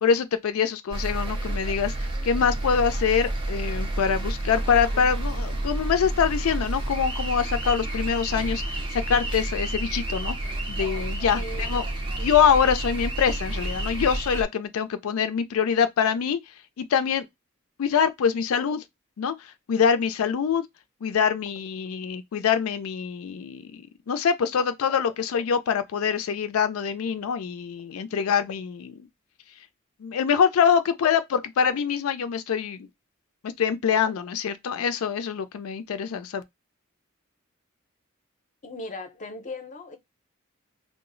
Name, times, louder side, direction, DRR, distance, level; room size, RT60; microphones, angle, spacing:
voice 1, 0.0-10.4 10.7-11.8 12.2-16.4 16.8-17.3 17.8-18.8 19.2-20.6 21.0-29.1 30.0-32.9 33.4-36.4, left 7 dB, 85° left, 0.4 m, -24 dB
sound 1, 0.9-14.4, right 1 dB, 25° right, 0.5 m, -30 dB
voice 2, 11.4-11.7 38.6-40.0, left 2 dB, 35° left, 0.6 m, -37 dB
2.1 x 2.0 x 3.7 m
head